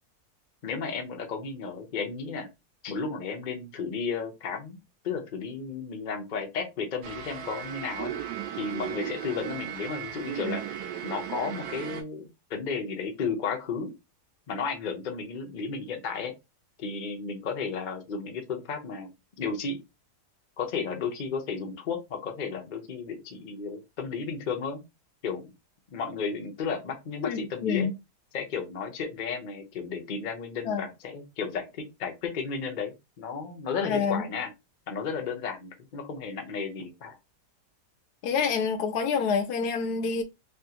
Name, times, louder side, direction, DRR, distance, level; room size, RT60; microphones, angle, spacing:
voice 1, 0.6-2.5 2.8-8.1 8.5-10.6 11.0-12.2 12.5-13.9 14.5-16.3 16.8-19.1 19.4-19.8 20.6-24.8 25.2-25.4 25.9-27.9 28.3-34.5 34.9-37.1, left 5 dB, 55° left, 0.5 m, -33 dB
sound 1, 7.0-12.0, right 10 dB, 90° right, 1.2 m, -36 dB
voice 2, 27.2-27.9 30.7-30.9 33.8-34.2 38.2-40.2, left 6 dB, 75° left, 1.2 m, -27 dB
3.5 x 2.4 x 2.8 m
omnidirectional pair, 1.7 m